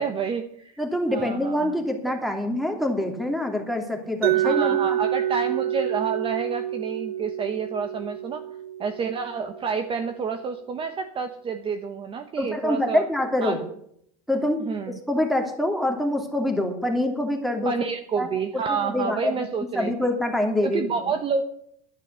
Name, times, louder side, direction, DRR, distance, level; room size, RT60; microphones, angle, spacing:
voice 1, 0.0-0.8 1.1-1.7 2.1-2.2 4.3-8.4 8.8-13.0 13.4-13.6 14.6-15.0 17.6-19.9 20.6-21.4, right 5 dB, 30° right, 7 dB, 1.0 m, -29 dB
voice 2, 0.8-4.8 12.4-13.6 14.3-14.6 14.9-17.8 18.2-18.3 18.5-19.5 19.7-21.1, left 1 dB, ahead, 4 dB, 2.6 m, -25 dB
Mallet percussion, 4.2-10.1, right 12 dB, 90° right, 0.7 m, -28 dB
11.0 x 10.5 x 6.8 m, 0.70 s
supercardioid pair, 125°, 19 cm